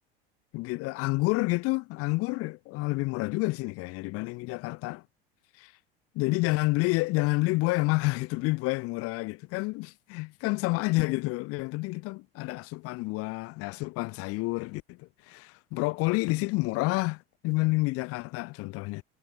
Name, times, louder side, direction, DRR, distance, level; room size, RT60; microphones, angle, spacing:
voice 1, 0.5-5.0 5.6-5.7 6.1-19.0, left 24 dB, 50° left, 0.7 m, -29 dB
hypercardioid pair, 75°, 29 cm